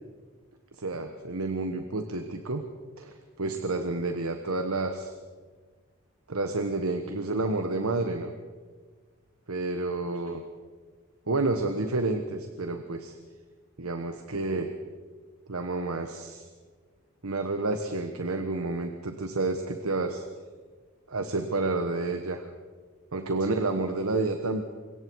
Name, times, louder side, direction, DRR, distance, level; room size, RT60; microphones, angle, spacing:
voice 1, 0.8-2.6 3.0-5.1 6.3-8.3 9.5-10.4 11.3-13.2 13.8-14.7 15.5-16.5 17.2-20.2 21.1-22.5 23.1-24.6, right 2 dB, 85° right, 7 dB, 1.3 m, -30 dB
25.5 x 22.0 x 4.7 m, 1.5 s
head